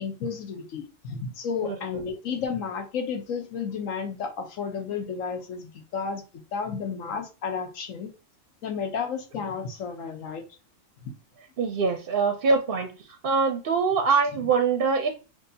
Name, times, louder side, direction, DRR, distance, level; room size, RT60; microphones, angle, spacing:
voice 1, 0.0-6.2 6.5-8.1 8.6-10.4 11.0-11.1, left 6 dB, 80° left, 1.2 m, -32 dB
voice 2, 11.6-12.9 13.2-15.1, right 5 dB, 55° right, 0.6 m, -23 dB
6.2 x 2.3 x 2.7 m
omnidirectional pair, 1.4 m